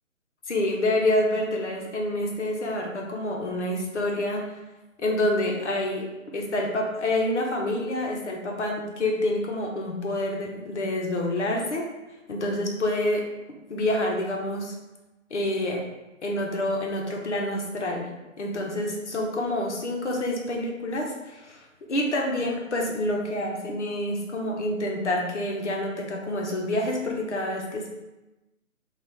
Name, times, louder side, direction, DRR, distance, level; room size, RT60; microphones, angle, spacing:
voice 1, 0.5-4.6 5.0-11.9 12.3-13.3 13.7-14.7 15.3-15.8 16.2-18.1 18.4-21.6 21.9-27.9, left 1 dB, 55° left, 0 dB, 0.9 m, -27 dB
4.2 x 2.4 x 3.4 m, 1.0 s
hypercardioid pair, 160°, 41 cm